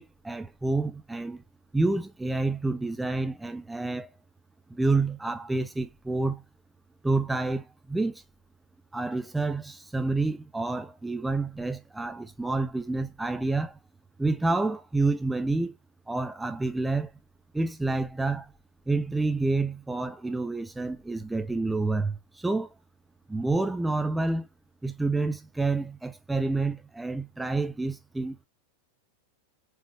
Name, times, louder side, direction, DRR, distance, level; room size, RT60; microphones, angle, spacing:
voice 1, 0.0-1.4 1.7-4.1 4.7-6.4 7.0-8.2 8.9-13.8 14.2-15.7 16.1-17.1 17.5-18.5 18.9-22.7 23.3-24.5 24.8-28.4, right 3 dB, 5° right, 0.4 m, -28 dB
4.6 x 3.1 x 3.0 m
figure-of-eight pair, 90°, 0 cm